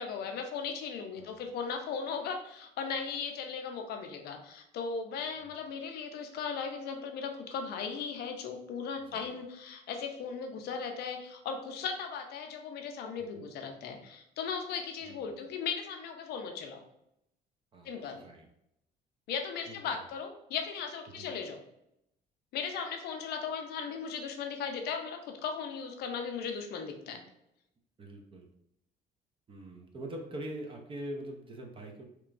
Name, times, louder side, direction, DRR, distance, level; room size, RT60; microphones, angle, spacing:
voice 1, 0.0-16.8 17.8-18.2 19.3-21.6 22.5-27.2, left 6 dB, 70° left, 5 dB, 0.5 m, -37 dB
voice 2, 15.0-15.4 17.7-18.5 19.7-20.0 21.1-21.3 28.0-28.5 29.5-32.0, right 1 dB, 30° right, 2 dB, 0.5 m, -44 dB
2.9 x 2.2 x 2.4 m, 0.80 s
cardioid pair, 110°, 17 cm